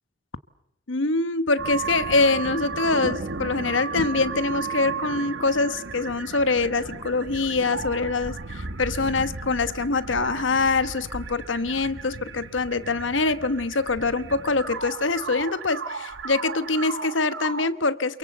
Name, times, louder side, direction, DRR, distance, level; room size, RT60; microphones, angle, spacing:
voice 1, 0.9-18.2, left 3 dB, 85° left, 1.2 m, -24 dB
sound 1, 1.6-17.7, right 4 dB, 75° right, 1.5 m, -34 dB
28.0 x 23.0 x 8.0 m
head